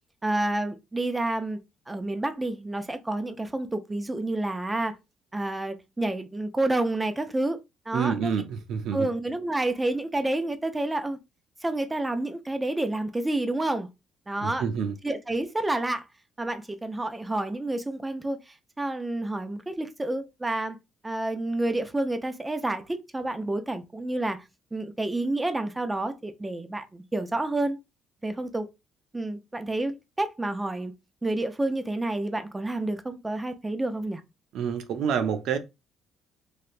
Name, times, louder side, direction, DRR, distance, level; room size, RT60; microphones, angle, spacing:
voice 1, 0.2-1.6 1.9-5.0 5.3-7.6 7.9-8.3 8.9-11.2 11.6-13.9 14.3-14.7 15.0-16.0 16.4-20.8 21.0-24.4 24.7-27.8 28.2-28.7 29.1-30.9 31.2-34.2, right 2 dB, 15° right, 0.5 m, -29 dB
voice 2, 7.9-9.1 14.4-15.0 34.5-35.6, right 7 dB, 75° right, 0.5 m, -28 dB
3.3 x 2.8 x 2.5 m
cardioid pair, 110°, 0 cm